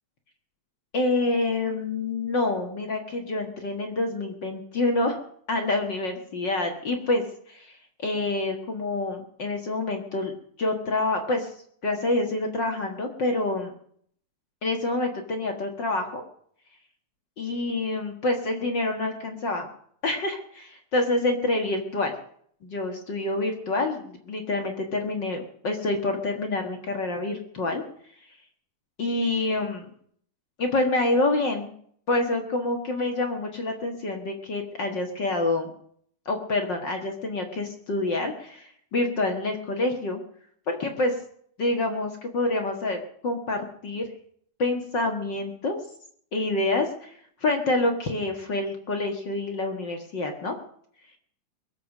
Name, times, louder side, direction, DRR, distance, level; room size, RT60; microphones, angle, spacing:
voice 1, 0.9-5.2 5.5-7.2 7.5-7.7 8.0-10.3 10.6-11.5 11.8-13.7 14.6-16.2 17.4-19.7 20.0-22.1 22.6-27.8 29.0-29.8 30.6-31.7 32.1-35.7 36.2-40.2 40.7-41.1 41.6-44.0 44.6-45.8 46.3-50.6, left 2 dB, 45° left, 3 dB, 1.7 m, -27 dB
22.5 x 7.9 x 6.6 m, 0.63 s
omnidirectional pair, 3.8 m